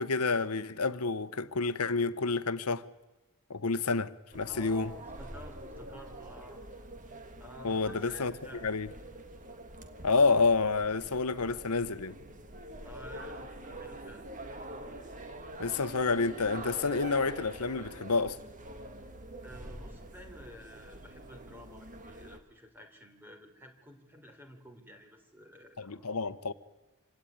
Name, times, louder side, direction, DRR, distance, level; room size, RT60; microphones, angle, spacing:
voice 1, 0.0-2.8 3.5-4.9 7.6-8.3 8.6-8.9 10.0-12.1 15.6-18.4 25.8-26.5, left 4 dB, 85° left, 1.0 m, -29 dB
sound 1, 4.3-22.4, right 1 dB, 35° right, 1.8 m, -45 dB
voice 2, 4.5-6.6 7.4-8.6 12.8-14.2 19.4-26.1, equal, 10° right, 3.4 m, -51 dB
26.5 x 17.5 x 9.5 m
head